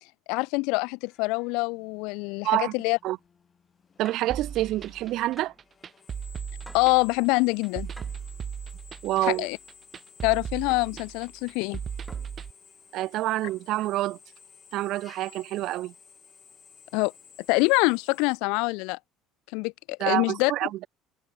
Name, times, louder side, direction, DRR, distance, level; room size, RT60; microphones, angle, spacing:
voice 1, 0.3-3.0 6.7-7.9 9.2-9.6 10.2-11.8 16.9-17.1 17.5-19.0 19.5-20.5, left 29 dB, 75° left, 0.4 m, -25 dB
Drill, 1.0-18.4, left 6 dB, 25° left, 5.2 m, -54 dB
sound 1, 4.0-4.4 5.4-5.7 6.7-7.0 8.0-8.3 9.2-9.5 10.7-11.0 12.1-12.5 13.5-13.8, equal, ahead, 1.0 m, -50 dB
voice 2, 4.0-5.5 9.0-9.5 12.9-14.2 14.7-15.9 20.0-20.7, right 15 dB, 50° right, 0.3 m, -27 dB
sound 2, 4.3-12.5, right 7 dB, 30° right, 1.4 m, -37 dB
cardioid pair, 155°, 0 cm